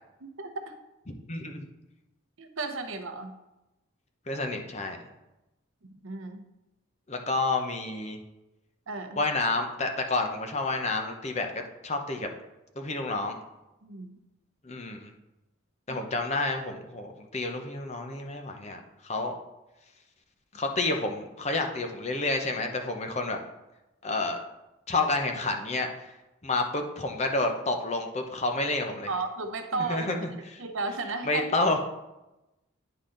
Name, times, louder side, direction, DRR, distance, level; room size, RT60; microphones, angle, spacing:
voice 1, 0.2-0.7 2.4-3.4 5.8-6.4 8.9-9.2 13.8-14.2 15.9-16.0 29.1-30.1 30.6-31.4, right 3 dB, 70° right, 7 dB, 0.8 m, -34 dB
voice 2, 1.3-1.6 4.3-5.0 7.1-8.2 9.2-11.5 11.8-12.3 12.8-13.4 14.6-15.1 15.9-18.8 19.0-19.4 20.5-23.4 24.0-24.4 24.9-25.9 26.4-29.1 29.7-30.2 30.4-30.6 31.2-31.8, left 2 dB, 30° left, 4 dB, 0.8 m, -29 dB
9.9 x 4.0 x 3.8 m, 0.98 s
head